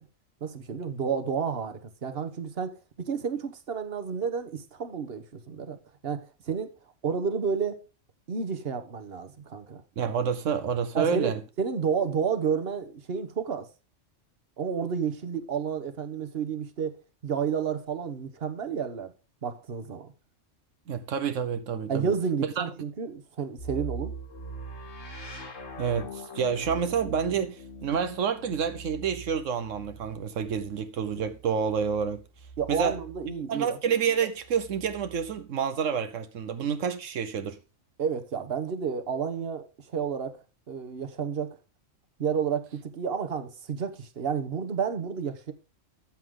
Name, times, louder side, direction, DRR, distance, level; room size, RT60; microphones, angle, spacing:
voice 1, 0.4-5.8 6.0-6.7 7.0-7.8 8.3-9.8 10.9-13.7 14.6-17.0 17.2-19.1 19.4-20.1 21.9-24.1 32.6-33.8 38.0-40.4 40.7-41.6 42.2-45.5, right 6 dB, 50° right, 1.4 m, -31 dB
voice 2, 10.0-11.4 20.9-22.1 22.6-22.7 25.8-32.2 32.7-33.0 33.5-37.6, right 7 dB, 90° right, 1.2 m, -28 dB
sound 1, 23.6-33.4 34.4-35.4, right 3 dB, 80° left, 2.2 m, -42 dB
13.5 x 7.9 x 3.8 m
omnidirectional pair, 1.3 m